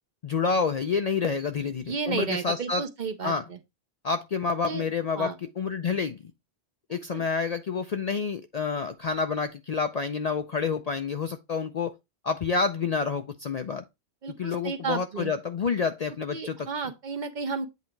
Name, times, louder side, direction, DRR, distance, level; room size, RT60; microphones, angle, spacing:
voice 1, 0.2-2.8 3.2-3.4 4.0-6.2 6.9-11.9 12.2-13.8 14.4-16.7, left 5 dB, 55° left, 0.5 m, -28 dB
voice 2, 1.9-3.6 4.6-4.8 5.2-5.3 6.9-7.2 14.2-15.3 16.3-17.7, right 5 dB, 50° right, 0.8 m, -32 dB
8.3 x 2.8 x 4.4 m
omnidirectional pair, 1.1 m